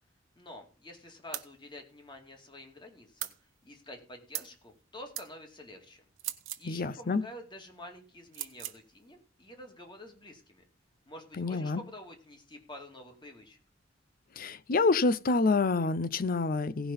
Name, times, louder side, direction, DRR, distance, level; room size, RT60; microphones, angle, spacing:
voice 1, 0.4-3.3 3.6-6.0 6.6-10.6 11.1-13.6, left 1 dB, 25° left, 2.5 m, -48 dB
sound 1, 1.3-1.5 3.2-3.4 4.3-4.6 5.1-5.3 6.2-6.7 8.3-8.8, right 14 dB, 85° right, 1.1 m, -38 dB
voice 2, 6.6-7.2 11.4-11.8 14.4-16.9, left 3 dB, 50° left, 0.5 m, -27 dB
17.0 x 5.7 x 5.4 m
head